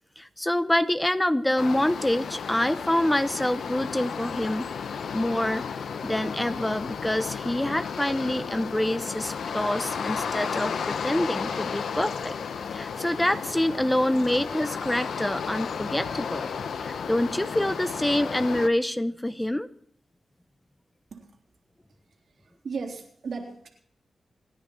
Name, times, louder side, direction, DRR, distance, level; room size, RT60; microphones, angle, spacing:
voice 1, 0.2-4.7 5.1-5.6 6.0-12.3 12.7-16.5 16.8-19.7, left 1 dB, 10° left, 11 dB, 0.9 m, -26 dB
sound 1, 1.6-18.7, left 6 dB, 80° left, 0.9 m, -33 dB
voice 2, 22.4-23.7, right 5 dB, 75° right, 1 dB, 3.6 m, -36 dB
28.0 x 10.5 x 4.3 m, 0.62 s
cardioid pair, 55°, 0 cm